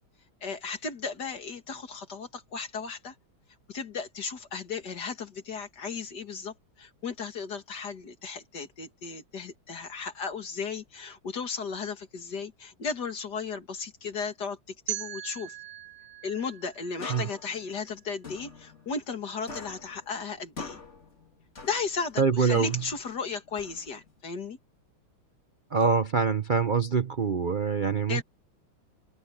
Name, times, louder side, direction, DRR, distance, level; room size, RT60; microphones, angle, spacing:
voice 1, 0.4-3.2 3.7-14.6 14.9-15.6 16.2-20.8 21.6-24.6 28.1-28.2, left 5 dB, 55° left, 2.6 m, -35 dB
sound 1, 14.9-17.8, right 13 dB, 50° right, 1.3 m, -40 dB
sound 2, 17.0-19.2 19.5-22.2 22.5-24.2, left 4 dB, 35° left, 2.6 m, -44 dB
voice 2, 22.2-22.8 25.7-28.2, right 5 dB, 80° right, 0.4 m, -24 dB
omnidirectional pair, 2.2 m